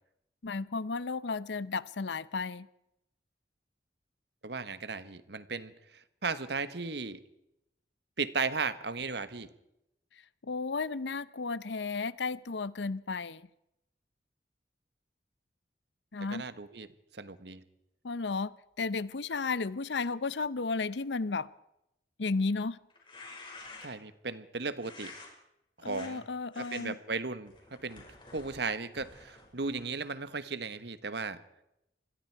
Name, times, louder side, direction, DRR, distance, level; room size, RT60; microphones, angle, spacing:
voice 1, 0.4-2.7 10.4-13.5 16.1-16.5 18.0-21.5 22.2-22.8 25.8-27.0, left 4 dB, 80° left, 17 dB, 0.7 m, -33 dB
voice 2, 4.4-7.2 8.2-9.5 16.3-16.9 17.1-17.6 23.8-25.1 25.8-26.2 26.6-28.0 28.3-31.4, right 4 dB, 70° right, 13 dB, 1.3 m, -36 dB
sound 1, 22.9-24.1 24.8-25.3 25.8-26.1 26.5-26.8 27.5-30.0, left 3 dB, 30° left, 5.5 m, -50 dB
27.0 x 21.0 x 4.7 m, 0.85 s
head